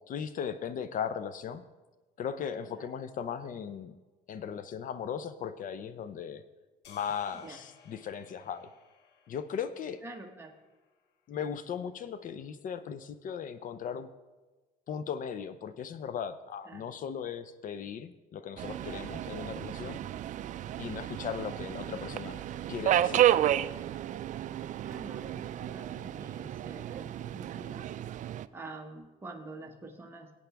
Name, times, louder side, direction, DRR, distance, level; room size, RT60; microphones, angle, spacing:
voice 1, 0.1-1.6 2.2-4.0 4.3-6.4 6.9-8.7 9.3-10.0 11.3-14.1 14.9-20.0 20.8-22.4 22.7-23.3, left 7 dB, 50° left, 12 dB, 0.6 m, -37 dB
sound 1, 6.8-11.2, left 6 dB, 90° left, 1.3 m, -60 dB
voice 2, 10.0-10.5 16.6-16.9 24.8-27.8 28.5-30.3, right 2 dB, 15° right, 1 dB, 1.1 m, -46 dB
Subway metro underground, 18.6-28.5, right 12 dB, 50° right, 0.4 m, -32 dB
17.5 x 8.5 x 3.4 m, 1.2 s
cardioid pair, 110°, 17 cm